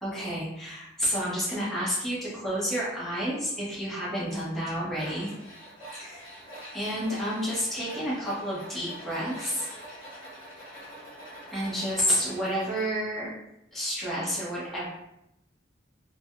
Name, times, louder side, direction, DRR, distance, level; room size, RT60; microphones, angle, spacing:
voice 1, 0.0-5.3 6.0-6.2 6.7-9.7 11.5-13.3 13.7-14.9, equal, ahead, -9 dB, 1.0 m, -30 dB
Tools, 5.0-12.9, right 1 dB, 25° left, 1.2 m, -45 dB
3.4 x 2.2 x 2.2 m, 0.83 s
head